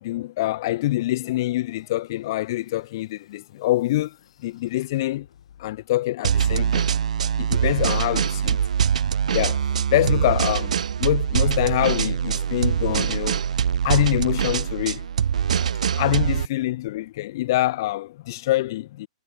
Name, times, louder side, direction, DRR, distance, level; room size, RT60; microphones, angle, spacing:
voice 1, 0.0-5.3 5.6-6.9 7.4-8.6 9.3-10.7 11.0-13.4 13.8-15.1 15.9-19.1, left 16 dB, 35° left, 0.3 m, -25 dB
sound 1, 1.7-6.0, left 9 dB, 60° left, 3.1 m, -57 dB
sound 2, 6.2-16.5, right 8 dB, 90° right, 0.4 m, -23 dB
hypercardioid pair, 170°, 4 cm